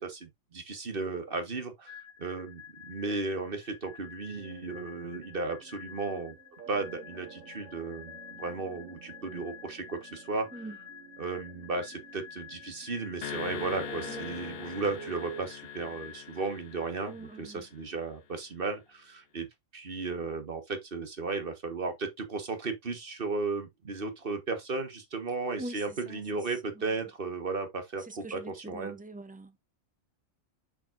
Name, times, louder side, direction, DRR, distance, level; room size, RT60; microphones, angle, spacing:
voice 1, 0.0-6.4 6.7-10.7 11.2-19.5 19.7-29.0, right 3 dB, 45° right, 1.8 m, -35 dB
sound 1, 1.9-17.5, left 8 dB, 70° left, 1.9 m, -50 dB
sound 2, 4.4-15.4, right 7 dB, 80° right, 1.5 m, -50 dB
sound 3, 13.2-17.7, left 8 dB, 55° left, 0.9 m, -42 dB
voice 2, 17.1-17.6 25.6-25.8 26.1-26.2 28.1-29.6, right 2 dB, 10° right, 0.6 m, -43 dB
7.5 x 5.8 x 2.7 m
omnidirectional pair, 1.4 m